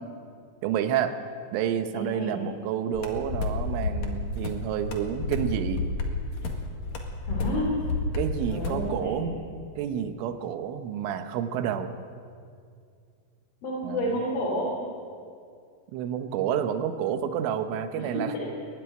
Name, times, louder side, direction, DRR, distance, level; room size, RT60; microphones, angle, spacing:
voice 1, 0.6-1.2 1.5-5.8 8.2-9.4 9.8-11.9 13.8-14.1 15.9-18.3, right 9 dB, 80° right, 8 dB, 3.5 m, -29 dB
voice 2, 1.9-2.4 7.2-7.7 8.5-9.2 13.6-14.7 18.0-18.6, equal, 70° left, -4 dB, 5.9 m, -30 dB
sound 1, 2.9-8.9, left 3 dB, 55° left, 2.2 m, -31 dB
22.0 x 12.0 x 9.9 m, 2.3 s
omnidirectional pair, 5.7 m